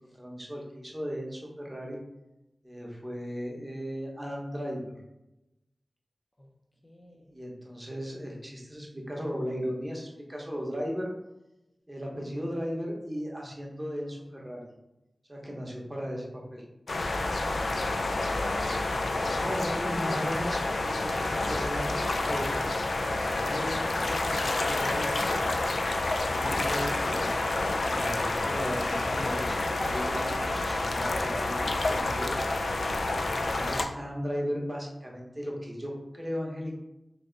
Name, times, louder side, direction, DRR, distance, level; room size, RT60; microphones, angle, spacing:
voice 1, 0.1-2.0 2.6-4.9 7.3-11.1 11.9-14.7 15.3-16.6 19.3-22.6 23.2-25.1 26.3-27.4 27.7-32.3 33.4-36.8, equal, 20° right, -1 dB, 0.8 m, -36 dB
voice 2, 6.8-7.5, equal, 30° left, -1 dB, 0.6 m, -51 dB
sound 1, 16.9-33.9, left 2 dB, 80° left, 0.3 m, -29 dB
3.2 x 2.7 x 3.8 m, 0.93 s
wide cardioid pair, 90°, 0 cm